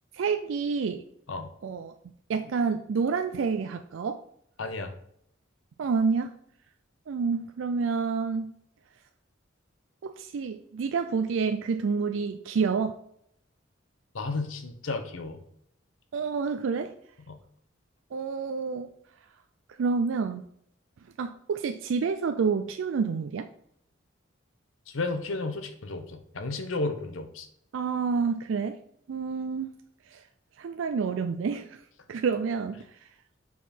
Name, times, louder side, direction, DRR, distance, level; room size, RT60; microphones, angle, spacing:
voice 1, 0.1-1.0 1.6-1.9 2.3-4.2 5.8-6.4 7.1-8.5 10.0-13.0 16.1-16.9 18.1-18.9 19.7-20.5 21.2-23.5 27.7-28.8 29.1-29.7 30.1-30.2 30.6-31.8 32.1-33.0, right 5 dB, 75° right, 8 dB, 0.4 m, -28 dB
voice 2, 4.6-4.9 14.1-15.4 17.3-17.4 24.9-27.5, left 3 dB, 90° left, 8 dB, 0.8 m, -33 dB
5.5 x 4.7 x 4.2 m, 0.71 s
head